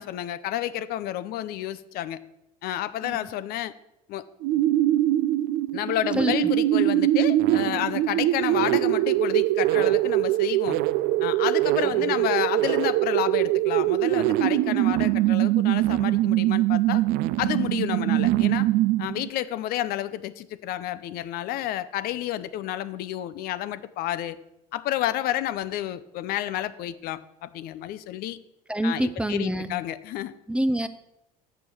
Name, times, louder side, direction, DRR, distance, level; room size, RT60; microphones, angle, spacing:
voice 1, 0.0-2.2 2.6-3.7 4.1-4.2 5.7-10.8 11.2-17.0 17.4-18.7 19.0-24.4 24.7-28.4 28.8-30.3, left 13 dB, 55° left, 13 dB, 0.5 m, -30 dB
sound 1, 4.4-19.3, right 15 dB, 60° right, 0.4 m, -23 dB
voice 2, 11.8-12.2 28.7-29.7 30.5-30.9, right 1 dB, 5° right, 12 dB, 0.5 m, -27 dB
7.0 x 6.8 x 6.1 m, 0.85 s
hypercardioid pair, 80°, 18 cm